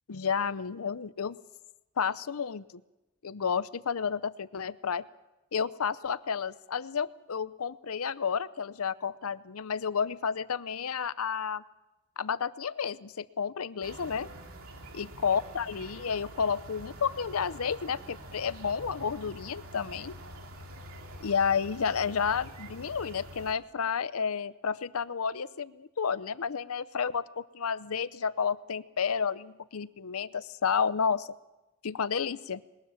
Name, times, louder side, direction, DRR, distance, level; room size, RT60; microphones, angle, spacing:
voice 1, 0.1-1.4 2.0-2.6 3.2-5.1 5.5-11.6 12.2-14.3 15.0-20.1 21.2-31.3 31.8-32.6, left 6 dB, 85° left, 17 dB, 0.7 m, -31 dB
sound 1, 13.8-23.5, right 1 dB, 85° right, 2.6 m, -46 dB
21.0 x 19.5 x 7.2 m, 1.0 s
head